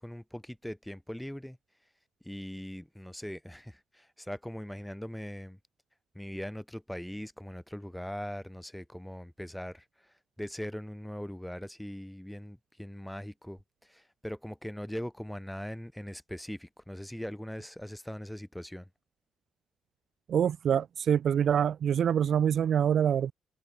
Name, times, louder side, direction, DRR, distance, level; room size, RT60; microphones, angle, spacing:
voice 1, 0.0-1.6 2.2-5.6 6.2-9.8 10.4-13.6 13.9-18.9, equal, 5° left, 1.9 m, -40 dB
voice 2, 20.3-23.3, right 8 dB, 60° right, 0.4 m, -25 dB
cardioid pair, 90°, 0 cm